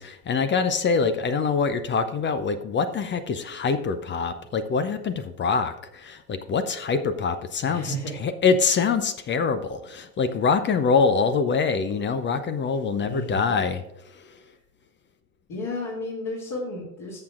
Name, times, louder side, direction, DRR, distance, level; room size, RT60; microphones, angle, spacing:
voice 1, 0.0-13.8, left 5 dB, 25° left, 11 dB, 0.6 m, -24 dB
voice 2, 7.6-8.2 13.0-13.6 15.5-17.2, left 1 dB, 45° left, -5 dB, 2.9 m, -33 dB
13.5 x 7.0 x 2.5 m, 0.88 s
hypercardioid pair, 80°, 48 cm